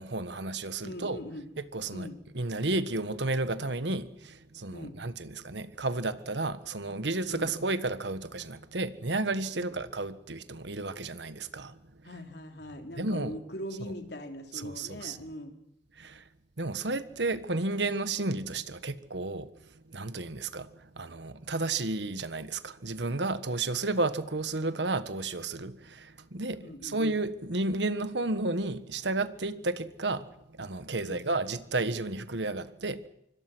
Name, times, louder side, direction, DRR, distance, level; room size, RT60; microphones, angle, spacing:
voice 1, 0.0-1.2 1.6-11.8 13.0-13.3 13.8-13.9 14.5-15.2 15.9-16.2 16.6-33.1, right 2 dB, 80° right, 1.5 m, -32 dB
voice 2, 0.8-1.5 1.9-2.2 4.7-4.9 7.3-7.5 9.5-9.7 12.0-15.6 26.6-27.0 31.0-31.2, left 1 dB, 65° left, 3.5 m, -41 dB
26.0 x 24.0 x 6.2 m
head